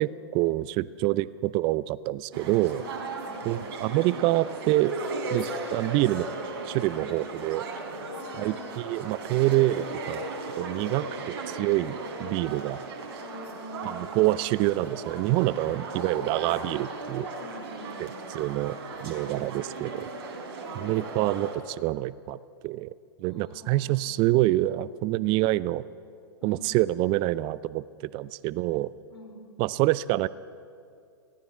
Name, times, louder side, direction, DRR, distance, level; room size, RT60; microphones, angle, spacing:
voice 1, 0.0-2.8 3.4-4.9 5.3-6.3 6.7-7.6 8.4-10.3 10.6-11.0 11.5-12.8 13.8-17.3 18.0-18.8 19.0-20.1 20.7-22.4 22.6-22.9 23.2-25.8 26.4-28.9 29.6-30.3, right 17 dB, 35° right, 19 dB, 0.6 m, -26 dB
sound 1, 2.3-21.5, right 3 dB, 55° right, 4.3 m, -36 dB
voice 2, 2.7-3.5 6.9-7.1 8.1-8.7 10.8-11.1 13.2-14.0 17.4-18.3 19.1-19.3 20.6-20.9 23.2-24.0 26.4-26.8 29.1-29.4, left 2 dB, 80° left, 4 dB, 4.7 m, -46 dB
23.5 x 17.5 x 7.4 m, 2.3 s
hypercardioid pair, 115°, 14 cm